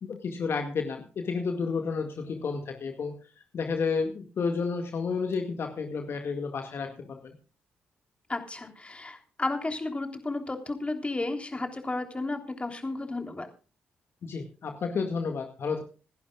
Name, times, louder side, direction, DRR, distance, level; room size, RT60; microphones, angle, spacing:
voice 1, 0.0-3.2 3.5-7.4 14.2-15.8, left 5 dB, 60° left, 4 dB, 1.9 m, -31 dB
voice 2, 8.3-13.5, left 2 dB, 25° left, 5 dB, 3.3 m, -33 dB
27.0 x 11.0 x 2.4 m, 0.35 s
hypercardioid pair, 45°, 5 cm